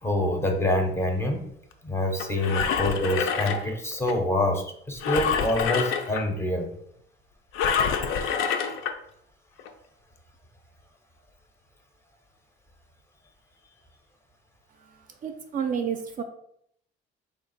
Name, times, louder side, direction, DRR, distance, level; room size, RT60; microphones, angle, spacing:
voice 1, 0.0-1.4 1.8-6.7, left 1 dB, 10° left, 2 dB, 0.5 m, -26 dB
Engine, 2.2-4.1 5.0-6.2 7.5-8.9 9.6-9.7, left 6 dB, 80° left, 0.5 m, -26 dB
voice 2, 14.7-16.2, right 7 dB, 40° right, 6 dB, 0.4 m, -31 dB
3.5 x 2.4 x 3.9 m, 0.69 s
cardioid pair, 135°, 20 cm